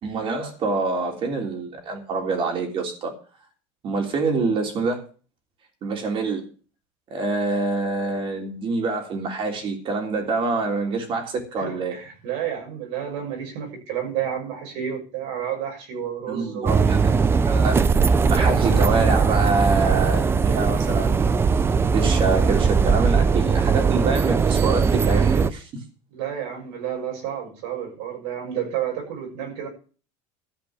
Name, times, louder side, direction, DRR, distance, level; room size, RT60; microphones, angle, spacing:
voice 1, 0.0-3.1 3.8-5.0 5.8-6.4 7.1-11.9 16.3-17.9 18.3-21.4 21.9-25.7, right 3 dB, 40° right, 3.4 m, -26 dB
voice 2, 11.6-16.8 26.1-29.7, right 9 dB, 85° right, 6.5 m, -30 dB
sound 1, 16.7-25.5, right 5 dB, 15° right, 0.5 m, -19 dB
13.5 x 5.2 x 8.7 m
cardioid pair, 145°, 14 cm